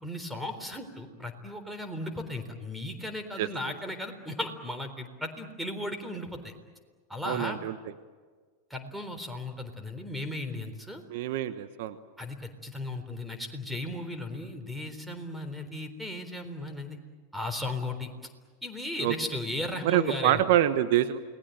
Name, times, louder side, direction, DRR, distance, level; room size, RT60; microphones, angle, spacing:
voice 1, 0.0-6.5 7.1-7.6 8.7-11.0 12.2-17.0 17.3-18.1 18.6-20.4, left 1 dB, 5° right, 8 dB, 3.9 m, -36 dB
voice 2, 7.2-7.7 11.1-11.9 19.0-19.1 19.8-21.3, right 12 dB, 60° right, 11 dB, 1.1 m, -26 dB
29.0 x 20.0 x 9.2 m, 1.5 s
hypercardioid pair, 90°, 0 cm